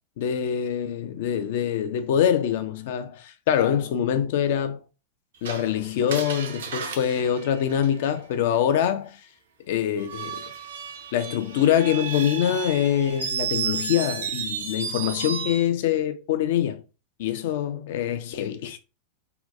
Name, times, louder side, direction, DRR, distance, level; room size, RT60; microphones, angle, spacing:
voice 1, 0.2-4.8 5.4-9.2 9.7-10.4 11.1-16.8 17.2-18.8, left 9 dB, 55° left, 0.3 m, -24 dB
Screech, 5.4-8.3 10.0-15.7, right 7 dB, 60° right, 0.5 m, -33 dB
2.7 x 2.2 x 2.4 m
figure-of-eight pair, 90°, 0 cm